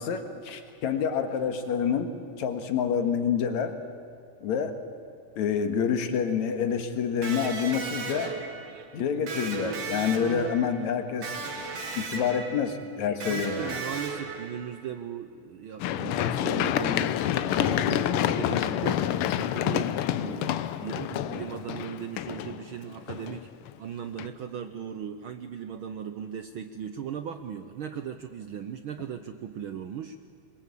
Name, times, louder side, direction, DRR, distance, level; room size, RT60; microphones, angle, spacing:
voice 1, 0.0-2.1 2.4-3.7 4.4-4.8 5.4-8.3 8.9-11.3 12.0-13.8, left 7 dB, 70° left, 7 dB, 2.9 m, -27 dB
Electric guitar, 7.2-14.9, right 5 dB, 60° right, 2.9 m, -36 dB
voice 2, 13.2-23.5 23.8-30.2, right 8 dB, 85° right, 9 dB, 1.1 m, -38 dB
Run, 15.8-23.7 24.2-24.3, left 11 dB, 90° left, 1.2 m, -28 dB
26.5 x 22.0 x 8.4 m, 2.3 s
omnidirectional pair, 3.4 m